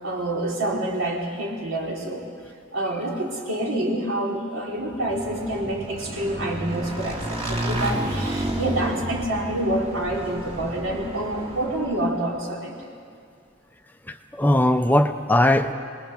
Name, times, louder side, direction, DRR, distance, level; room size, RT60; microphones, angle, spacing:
voice 1, 0.0-2.2 2.7-12.7, right 1 dB, 70° right, -1 dB, 3.7 m, -27 dB
Motorcycle / Engine, 4.9-12.2, right 1 dB, 30° right, 2.6 m, -31 dB
voice 2, 14.1-15.7, left 1 dB, 10° left, 7 dB, 0.6 m, -19 dB
26.0 x 20.0 x 6.9 m, 2.3 s
head